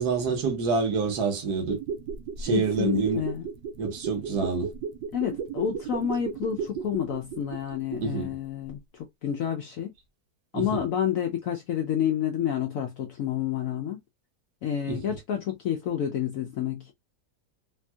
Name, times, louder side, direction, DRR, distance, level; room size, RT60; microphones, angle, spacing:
voice 1, 0.0-1.8 2.4-3.2 3.8-4.7 8.0-8.3 10.5-10.8 14.9-15.0, right 5 dB, 65° right, 1.4 m, -27 dB
sound 1, 1.6-8.4 8.7-8.8, right 6 dB, 85° right, 1.3 m, -35 dB
voice 2, 2.4-3.5 5.1-9.9 10.5-14.0 14.6-16.9, left 9 dB, 75° left, 0.7 m, -29 dB
3.3 x 2.6 x 2.2 m
omnidirectional pair, 1.9 m